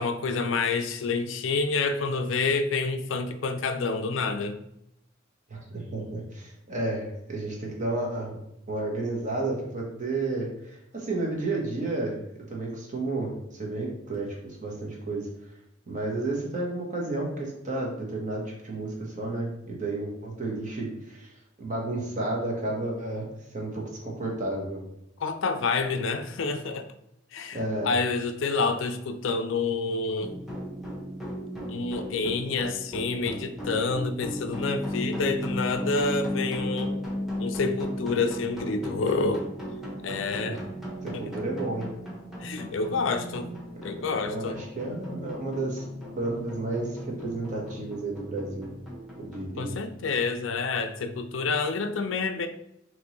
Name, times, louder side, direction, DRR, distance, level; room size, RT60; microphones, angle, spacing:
voice 1, 0.0-4.6 25.2-26.9 27.3-27.6 27.8-30.4 31.7-37.0 37.4-39.5 40.0-40.6 41.1-41.3 42.4-43.5 43.8-44.6 49.6-52.5, left 4 dB, 70° left, 8 dB, 0.4 m, -28 dB
voice 2, 5.5-8.3 8.7-12.2 12.5-15.3 15.9-21.3 21.6-23.3 23.5-24.8 27.5-27.9 40.4-40.6 41.0-41.9 43.9-45.8 46.1-48.7 49.2-49.8, right 2 dB, 40° right, -1 dB, 1.1 m, -32 dB
sound 1, 30.2-49.4, left 1 dB, ahead, 1.0 m, -36 dB
4.2 x 3.1 x 3.0 m, 0.79 s
head